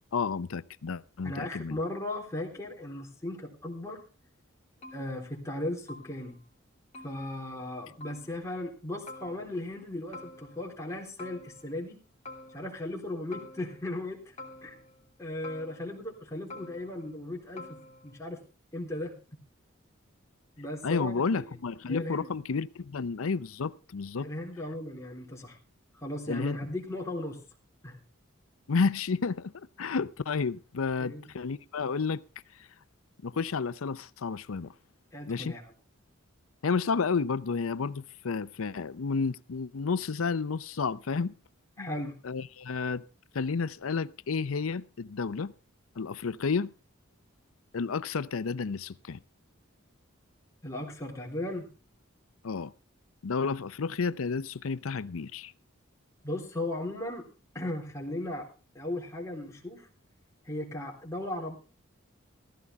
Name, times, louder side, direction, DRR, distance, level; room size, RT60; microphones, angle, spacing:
voice 1, 0.1-1.8 20.8-24.3 26.3-26.6 28.7-32.2 33.2-34.7 35.3-35.6 36.6-41.3 41.8-41.9 42.2-43.0 43.3-45.5 46.0-46.7 47.7-49.2 52.4-52.7 53.2-55.5, left 5 dB, 90° left, 0.6 m, -31 dB
voice 2, 1.2-4.0 4.9-6.4 7.0-12.0 12.5-14.3 14.6-14.7 15.2-18.4 18.7-19.2 20.6-21.6 21.9-22.3 24.2-25.6 26.0-27.4 27.8-28.0 31.0-31.2 35.1-35.7 41.8-42.2 50.6-51.7 56.2-57.3 57.5-58.5 58.7-59.9 60.5-61.6, left 1 dB, 15° left, 3.7 m, -37 dB
sound 1, 4.8-5.6 5.9-6.5 6.9-7.8 8.0-8.6 9.1-9.8 10.1-10.9 11.2-12.0 12.3-13.0 13.3-14.1 14.4-15.1 15.4-16.2 16.5-17.2 17.6-18.3, left 2 dB, 30° left, 2.7 m, -49 dB
15.0 x 14.0 x 3.5 m
head